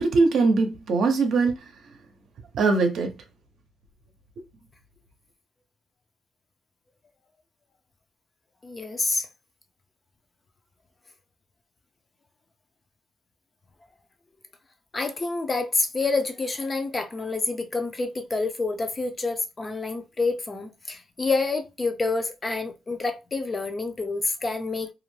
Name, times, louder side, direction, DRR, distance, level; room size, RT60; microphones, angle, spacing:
voice 1, 0.0-1.5 2.5-3.1, right 3 dB, 70° right, 0.6 m, -21 dB
voice 2, 8.6-9.3 14.9-24.9, left 3 dB, 30° left, 0.5 m, -28 dB
2.4 x 2.1 x 3.1 m
cardioid pair, 90°, 0 cm